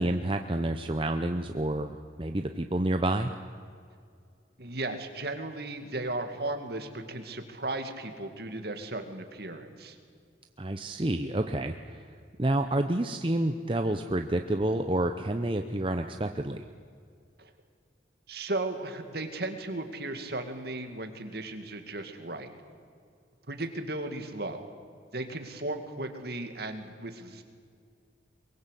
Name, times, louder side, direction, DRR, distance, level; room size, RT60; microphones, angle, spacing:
voice 1, 0.0-3.3 10.6-12.0 12.4-16.6, right 1 dB, 25° right, 6 dB, 0.8 m, -29 dB
voice 2, 4.6-10.0 17.4-17.5 18.3-22.5 23.5-24.7 25.1-27.4, right 2 dB, 55° right, 6 dB, 2.3 m, -36 dB
23.0 x 22.5 x 8.4 m, 2.2 s
head